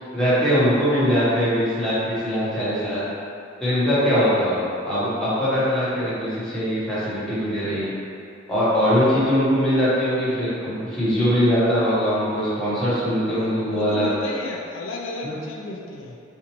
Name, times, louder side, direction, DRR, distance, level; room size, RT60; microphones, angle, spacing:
voice 1, 0.1-3.0 3.6-7.9 8.5-14.1 15.2-15.3, equal, 5° left, -12 dB, 1.0 m, -21 dB
voice 2, 13.2-16.2, left 3 dB, 80° left, -1 dB, 0.4 m, -34 dB
4.3 x 2.5 x 2.9 m, 2.6 s
head